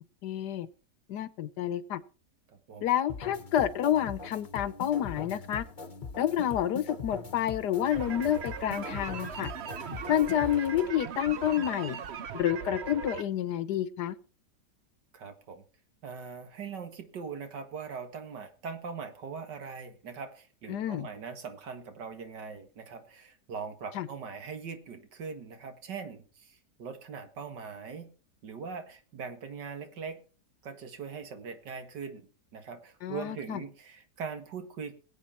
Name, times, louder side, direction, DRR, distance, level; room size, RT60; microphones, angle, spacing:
voice 1, 0.2-0.7 1.1-2.0 2.8-5.7 6.2-9.5 10.1-12.0 12.3-14.2 20.7-21.1 23.9-24.1 33.0-33.6, left 11 dB, 75° left, 16 dB, 1.4 m, -29 dB
voice 2, 2.5-2.9 15.1-15.6 16.0-28.1 28.4-30.2 30.6-32.2 32.5-34.9, right 5 dB, 90° right, 7 dB, 2.3 m, -41 dB
Groove Four, 3.1-10.9, left 4 dB, 35° left, 1.0 m, -42 dB
sound 1, 7.9-13.2, right 7 dB, 50° right, 0.9 m, -39 dB
21.0 x 8.3 x 4.3 m, 0.39 s
omnidirectional pair, 1.8 m